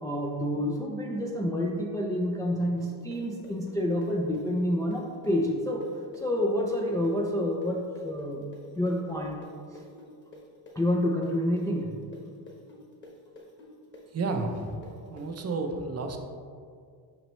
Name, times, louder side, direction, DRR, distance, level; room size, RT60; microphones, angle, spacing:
voice 1, 0.0-5.9 6.2-8.5 8.8-9.4 9.7-9.8 10.8-12.0, left 1 dB, 10° left, -1 dB, 0.3 m, -28 dB
sound 1, 2.8-10.4 10.7-15.3, left 2 dB, 25° left, 1.1 m, -49 dB
voice 2, 14.1-14.8 15.1-16.2, right 3 dB, 35° right, 5 dB, 0.6 m, -31 dB
6.1 x 5.0 x 3.1 m, 2.1 s
cardioid pair, 110°, 47 cm